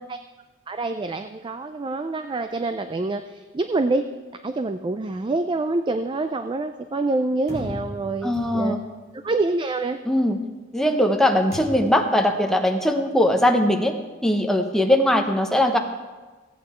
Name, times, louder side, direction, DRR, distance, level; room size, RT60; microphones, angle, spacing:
voice 1, 0.7-4.1 4.4-8.8 9.2-10.0, right 2 dB, 25° right, 8 dB, 0.4 m, -26 dB
sound 1, 7.5-9.0 11.5-12.1, right 1 dB, 55° right, 3.5 m, -36 dB
voice 2, 8.2-8.8 10.1-10.4 10.7-13.9 14.2-15.8, left 1 dB, ahead, 3 dB, 0.8 m, -20 dB
15.5 x 8.6 x 4.4 m, 1.3 s
head